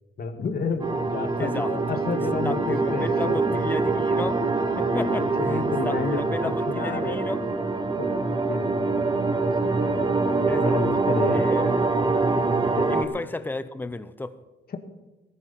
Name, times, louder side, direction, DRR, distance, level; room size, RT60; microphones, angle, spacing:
voice 1, 0.2-3.6 5.0-7.2 8.0-9.3 9.6-11.4 12.7-12.9 14.7-14.8, left 4 dB, 50° left, 6 dB, 2.0 m, -31 dB
sound 1, 0.8-13.0, right 3 dB, 25° right, 1.3 m, -24 dB
voice 2, 1.4-1.7 2.4-4.4 4.8-7.4 10.5-10.8 11.3-11.7 12.9-14.4, left 2 dB, 10° left, 13 dB, 0.8 m, -33 dB
16.0 x 15.0 x 4.3 m, 1.1 s
cardioid pair, 90°, 20 cm